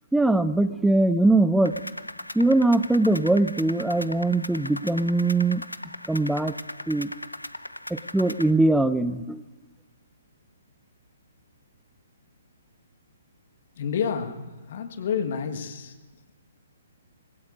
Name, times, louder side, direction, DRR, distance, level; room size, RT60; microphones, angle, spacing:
voice 1, 0.1-1.8 2.3-5.6 6.1-6.5 6.9-7.1 7.9-9.4, right 2 dB, 5° right, 14 dB, 0.5 m, -21 dB
sound 1, 1.7-8.5, left 1 dB, 90° left, 0.6 m, -38 dB
voice 2, 13.8-15.9, left 7 dB, 50° left, 6 dB, 1.6 m, -29 dB
25.0 x 20.5 x 2.7 m, 1.2 s
figure-of-eight pair, 125°, 0 cm